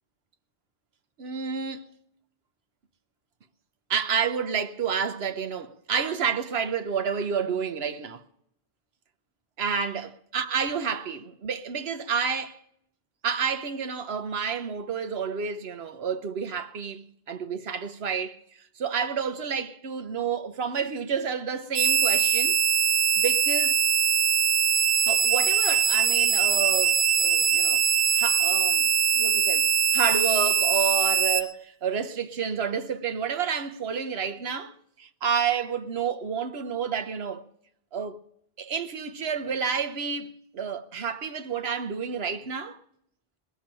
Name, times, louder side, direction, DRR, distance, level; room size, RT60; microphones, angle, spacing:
voice 1, 1.2-1.9 3.9-8.2 9.6-12.6 13.2-18.4 18.8-22.6 23.2-23.8 25.1-27.8 28.1-28.9 29.1-37.4 37.9-38.2 38.6-42.8, right 6 dB, 80° right, 1.1 m, -30 dB
sound 1, 21.7-31.4, right 7 dB, 55° right, 0.9 m, -22 dB
20.5 x 7.0 x 8.9 m
omnidirectional pair, 1.0 m